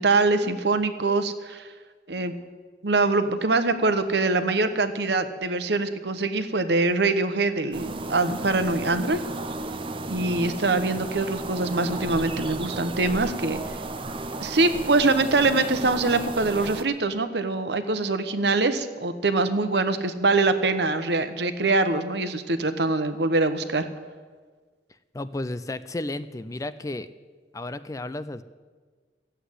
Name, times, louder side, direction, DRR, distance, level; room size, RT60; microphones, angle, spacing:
voice 1, 0.0-1.7 2.1-2.3 2.8-9.2 10.1-13.6 14.4-23.9, right 3 dB, 65° right, 9 dB, 1.0 m, -24 dB
sound 1, 7.7-16.8, right 2 dB, 30° right, 0.6 m, -34 dB
voice 2, 25.1-27.1 27.5-28.4, left 2 dB, 20° left, 13 dB, 0.4 m, -33 dB
14.5 x 8.0 x 9.9 m, 1.5 s
head